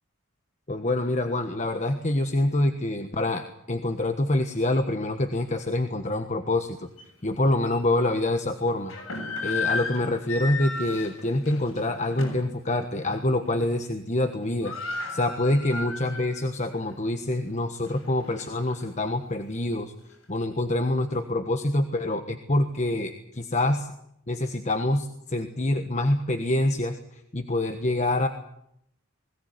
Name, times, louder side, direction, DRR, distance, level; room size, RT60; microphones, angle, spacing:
voice 1, 0.7-6.9 7.2-8.9 9.4-14.7 15.1-19.9 20.3-23.9 24.3-28.3, left 1 dB, 35° left, 7 dB, 1.4 m, -26 dB
sound 1, 7.0-7.1 7.6-7.8 8.7-12.5 12.9-13.1 13.5-13.9 14.1-14.2 14.4-16.4 16.8-16.9 17.5-18.8, left 3 dB, 85° left, 7.5 m, -34 dB
21.5 x 17.5 x 9.6 m, 0.74 s
head